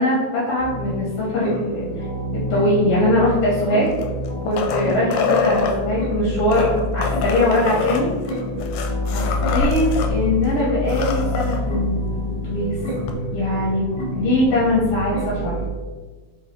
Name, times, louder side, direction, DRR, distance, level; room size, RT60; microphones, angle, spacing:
voice 1, 0.0-2.0 2.5-3.9 4.4-8.1 9.1-9.2 9.5-12.8 13.3-13.9 14.1-15.6, left 1 dB, 65° left, -7 dB, 1.8 m, -21 dB
sound 1, 0.6-15.7, left 1 dB, 45° left, 0.8 m, -27 dB
sound 2, 3.8-5.8 6.4-10.1 10.4-10.5 10.8-11.6 13.1-13.2, left 5 dB, 80° left, 1.9 m, -25 dB
4.6 x 3.7 x 2.9 m, 1.4 s
omnidirectional pair, 3.5 m